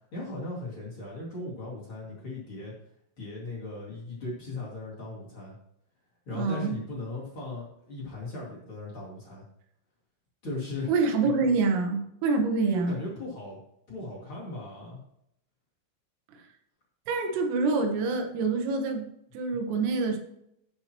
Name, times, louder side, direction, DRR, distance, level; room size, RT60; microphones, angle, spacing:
voice 1, 0.1-2.7 3.2-5.6 6.3-9.5 10.4-10.9 12.7-13.6 13.9-15.0, left 2 dB, 40° left, -5 dB, 1.9 m, -37 dB
voice 2, 6.3-6.8 10.9-13.0 17.1-19.1 19.3-20.2, right 4 dB, 80° right, 4 dB, 3.8 m, -26 dB
16.0 x 6.0 x 3.0 m, 0.75 s
omnidirectional pair, 6.0 m